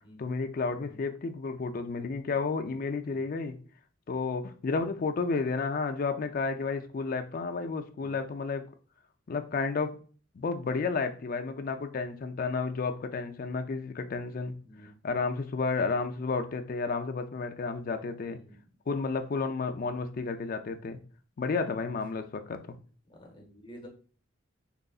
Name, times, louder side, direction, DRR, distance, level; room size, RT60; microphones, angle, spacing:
voice 1, 0.2-3.6 4.1-8.6 9.3-10.0 10.3-18.4 18.9-21.0 21.4-22.8, left 4 dB, 45° left, 0.4 m, -32 dB
voice 2, 14.6-14.9 18.2-18.6 23.1-23.9, equal, 25° left, 0.8 m, -51 dB
3.7 x 3.0 x 2.3 m
head